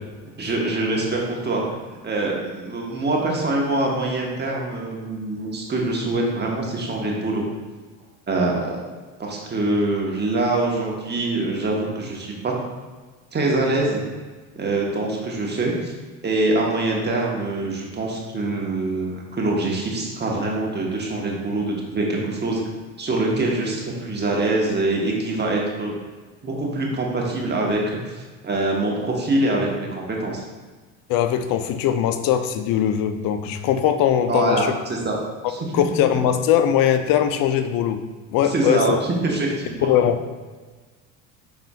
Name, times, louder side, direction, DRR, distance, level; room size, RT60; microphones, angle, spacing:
voice 1, 0.4-1.6 1.9-7.4 8.3-8.8 9.2-12.5 13.3-14.0 14.6-15.9 16.2-22.6 23.0-25.9 26.4-30.4 34.3-35.2 35.5-35.6 38.4-38.9 39.2-39.9, right 2 dB, 25° right, -1 dB, 1.1 m, -24 dB
voice 2, 31.1-34.7 35.7-38.0 38.3-39.0 39.8-40.2, left 9 dB, 60° left, 9 dB, 0.6 m, -20 dB
5.4 x 4.3 x 2.3 m, 1.3 s
supercardioid pair, 85°, 40 cm